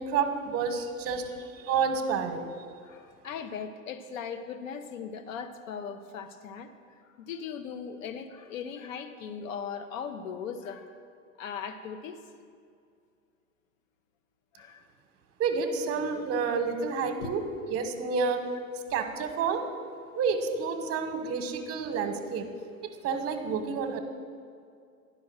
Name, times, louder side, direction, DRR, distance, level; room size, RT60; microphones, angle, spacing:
voice 1, 0.0-2.5 15.4-17.4 17.7-18.4 18.9-19.6 20.2-22.5 22.8-24.0, right 5 dB, 35° right, 7 dB, 1.0 m, -29 dB
voice 2, 2.8-6.7 7.0-11.0 11.4-12.2 14.5-14.8 17.2-17.3, left 7 dB, 70° left, 7 dB, 0.8 m, -39 dB
10.5 x 5.4 x 6.0 m, 2.3 s
figure-of-eight pair, 85°, 41 cm